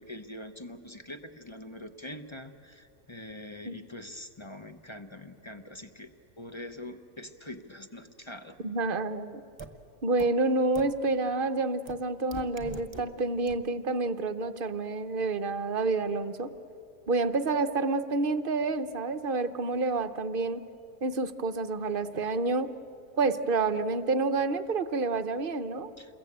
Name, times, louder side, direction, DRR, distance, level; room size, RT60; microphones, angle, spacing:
voice 1, 0.0-8.6 26.0-26.2, left 1 dB, 20° left, 7 dB, 0.9 m, -44 dB
voice 2, 8.6-9.4 10.0-16.5 17.1-20.6 21.0-22.7 23.2-25.9, right 3 dB, 45° right, 11 dB, 0.9 m, -28 dB
sound 1, 9.6-9.7 10.2-10.3 10.7-10.8 11.9-12.0 12.3-13.0 13.5-13.6, right 2 dB, 20° right, 1.2 m, -40 dB
28.5 x 22.0 x 8.7 m, 2.7 s
omnidirectional pair, 1.6 m